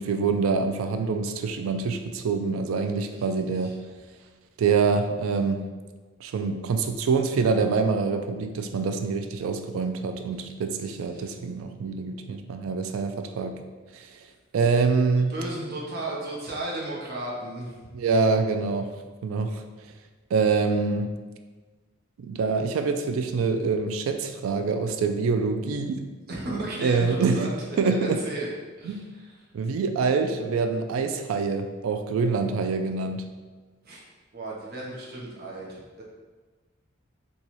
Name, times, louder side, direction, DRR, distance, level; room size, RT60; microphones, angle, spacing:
voice 1, 0.0-3.8 4.6-5.7 6.2-13.6 13.9-14.1 14.5-15.3 17.9-18.9 19.2-19.6 20.3-21.1 22.2-26.0 26.8-27.5 27.8-28.2 28.8-29.0 29.5-33.3, right 4 dB, 85° right, 7 dB, 0.3 m, -25 dB
voice 2, 3.0-3.7 11.0-11.3 15.3-17.9 26.3-27.5 27.8-28.5 28.8-29.4 33.8-34.0 34.3-36.0, right 2 dB, 50° right, -4 dB, 0.7 m, -35 dB
4.1 x 2.3 x 2.9 m, 1.3 s
head